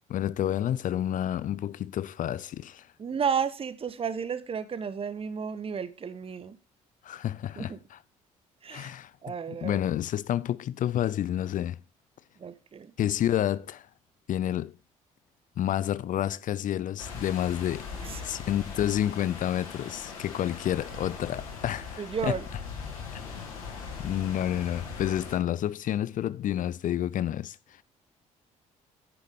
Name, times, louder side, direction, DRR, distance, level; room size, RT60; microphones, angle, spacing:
voice 1, 0.1-2.9 7.0-8.0 8.7-9.1 9.5-11.8 13.0-13.9 14.3-14.8 15.6-17.9 18.2-22.4 24.0-27.8, left 11 dB, 50° left, 0.5 m, -29 dB
voice 2, 3.0-6.6 7.6-7.8 8.6-8.9 9.2-9.8 12.4-12.9 18.0-18.2 22.0-22.4, right 7 dB, 35° right, 0.8 m, -32 dB
sound 1, 17.0-25.4, left 5 dB, 85° left, 1.8 m, -40 dB
9.9 x 6.9 x 3.5 m
hypercardioid pair, 50°, 17 cm